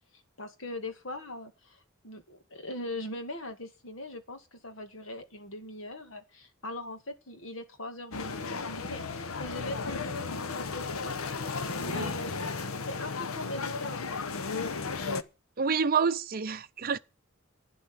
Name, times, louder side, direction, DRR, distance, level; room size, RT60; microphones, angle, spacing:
voice 1, 0.4-14.2, left 1 dB, 65° left, 2.0 m, -41 dB
sound 1, 8.1-15.2, left 4 dB, 85° left, 0.9 m, -34 dB
voice 2, 15.6-17.0, right 6 dB, 45° right, 0.6 m, -28 dB
11.5 x 9.2 x 7.5 m
head